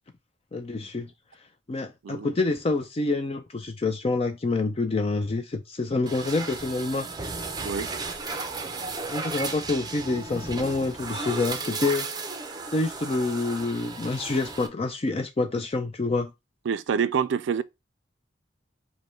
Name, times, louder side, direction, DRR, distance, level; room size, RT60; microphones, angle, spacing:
voice 1, 0.5-1.1 1.7-7.1 9.1-12.1 12.7-16.3, left 3 dB, 30° left, 0.4 m, -27 dB
sound 1, 6.1-14.7, right 3 dB, 20° right, 0.6 m, -34 dB
voice 2, 16.7-17.6, right 6 dB, 75° right, 0.4 m, -26 dB
5.2 x 2.2 x 4.3 m
head